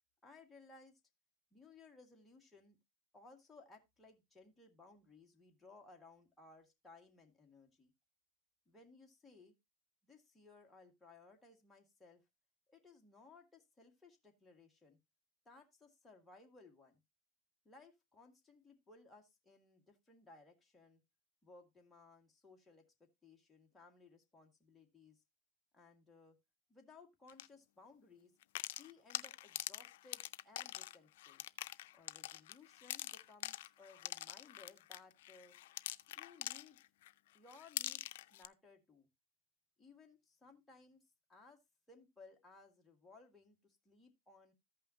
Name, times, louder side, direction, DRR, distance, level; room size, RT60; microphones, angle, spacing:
voice 1, 0.2-1.0 1.5-2.8 3.1-7.9 8.7-9.5 10.0-12.2 12.7-15.0 15.5-17.0 17.7-21.0 21.4-25.2 25.7-26.4 26.7-28.3 28.8-31.4 31.9-35.5 36.1-36.8 37.3-39.1 39.8-41.0 41.3-41.6 41.9-44.5, left 3 dB, 10° left, 0 dB, 1.9 m, -61 dB
sound 1, 27.3-27.5 28.4-37.1 37.5-38.5, left 15 dB, 75° left, 0.4 m, -44 dB
14.5 x 5.5 x 2.8 m, 0.21 s
supercardioid pair, 130°, 0 cm